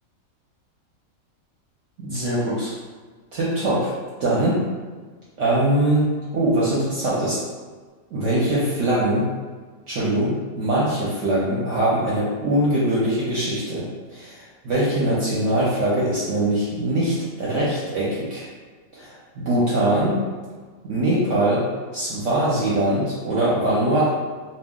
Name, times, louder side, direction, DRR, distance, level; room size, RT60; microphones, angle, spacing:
voice 1, 2.0-2.7 3.3-3.9 4.2-4.6 5.4-6.1 6.3-7.4 8.1-9.3 9.9-13.9 14.1-18.5 18.9-20.2 20.8-21.7 21.9-24.1, right 1 dB, 65° right, -7 dB, 0.9 m, -22 dB
2.3 x 2.0 x 3.5 m, 1.5 s
omnidirectional pair, 1.5 m